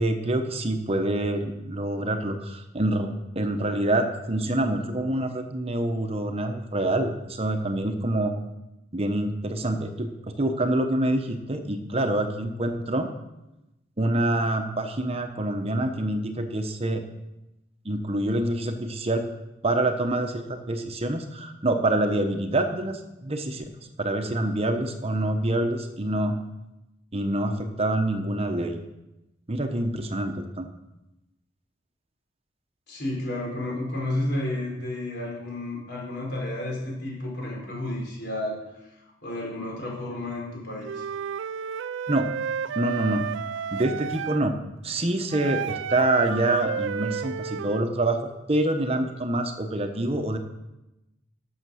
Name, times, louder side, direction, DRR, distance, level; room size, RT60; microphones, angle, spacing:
voice 1, 0.0-8.3 8.9-10.1 10.4-13.1 14.0-17.0 17.8-19.2 19.6-23.6 24.0-26.4 27.1-28.8 29.5-30.7 42.1-42.3 42.8-43.3 43.7-44.5 44.8-50.4, right 1 dB, 35° right, 6 dB, 0.9 m, -26 dB
voice 2, 32.9-38.6 39.2-41.0, left 1 dB, 60° left, -2 dB, 4.5 m, -31 dB
Wind instrument woodwind instrument, 40.8-44.5 45.3-47.9, right 7 dB, 85° right, 0.4 m, -32 dB
12.5 x 7.3 x 6.4 m, 0.96 s
head